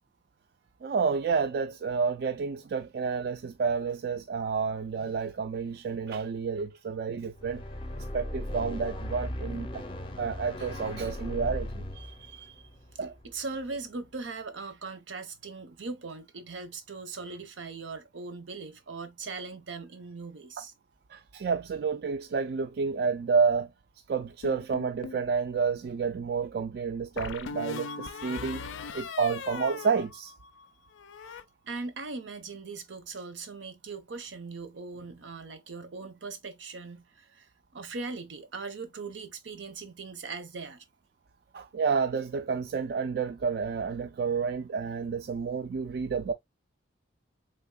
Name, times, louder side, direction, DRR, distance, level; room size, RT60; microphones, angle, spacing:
voice 1, 0.8-7.6 8.0-9.8 10.2-11.9 13.0-13.1 21.1-23.7 24.1-28.6 28.9-30.3 41.5-46.3, right 5 dB, 55° right, 0.3 m, -30 dB
sound 1, 7.3-13.7, left 1 dB, 25° left, 0.5 m, -38 dB
voice 2, 12.0-12.6 13.2-20.7 31.7-40.8, right 4 dB, 75° right, 0.7 m, -40 dB
sound 2, 24.4-25.3 27.2-30.7 30.9-31.4, left 5 dB, 80° left, 0.4 m, -39 dB
3.5 x 3.4 x 2.2 m
head